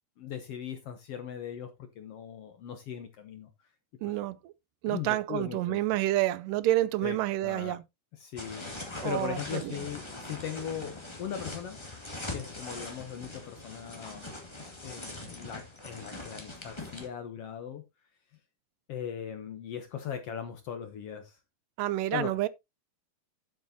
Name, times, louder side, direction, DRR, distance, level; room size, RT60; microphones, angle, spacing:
voice 1, 0.2-3.5 4.0-4.1 4.9-5.8 7.0-7.7 8.1-11.8 12.3-14.3 14.8-17.8 18.9-21.4 22.1-22.3, left 8 dB, 65° left, 1.5 m, -39 dB
voice 2, 4.0-4.5 4.8-7.8 9.0-9.8 21.8-22.5, right 16 dB, 90° right, 2.3 m, -29 dB
sound 1, 8.4-17.1, left 2 dB, 10° left, 1.4 m, -42 dB
11.5 x 7.7 x 2.8 m
omnidirectional pair, 3.7 m